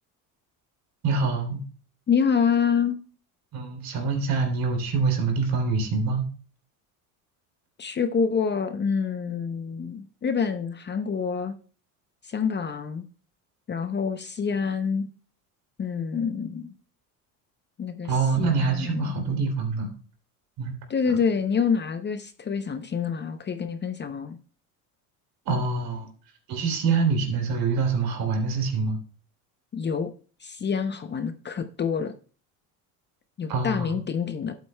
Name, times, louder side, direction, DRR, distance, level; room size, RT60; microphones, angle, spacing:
voice 1, 1.0-1.6 3.5-6.3 18.1-19.9 20.6-20.8 25.5-26.1 26.5-29.0 33.5-33.9, right 4 dB, 60° right, 4 dB, 3.1 m, -25 dB
voice 2, 2.1-3.0 7.8-11.5 12.2-13.0 13.7-15.1 15.8-16.7 17.8-19.1 20.9-24.4 29.7-30.1 30.4-32.1 33.4-34.6, left 6 dB, 25° left, 9 dB, 0.6 m, -27 dB
12.0 x 8.1 x 2.2 m, 0.39 s
cardioid pair, 110°, 40 cm